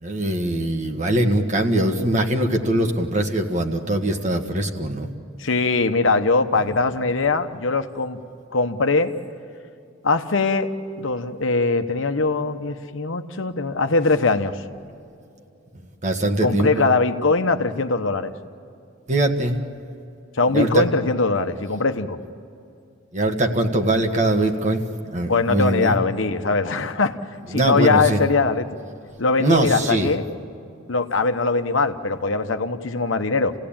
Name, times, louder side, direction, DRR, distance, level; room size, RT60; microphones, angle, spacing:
voice 1, 0.0-5.1 16.0-16.9 19.1-19.6 20.5-20.9 23.1-24.8 25.1-26.0 27.5-28.2 29.4-30.1, right 1 dB, 40° right, 4 dB, 1.6 m, -22 dB
voice 2, 5.4-8.2 8.5-9.1 10.0-10.7 11.0-14.6 16.4-18.3 20.3-22.2 25.3-27.2 27.5-28.6 29.2-30.3 30.9-33.5, left 3 dB, 75° left, 7 dB, 1.1 m, -21 dB
28.5 x 17.0 x 8.8 m, 2.6 s
head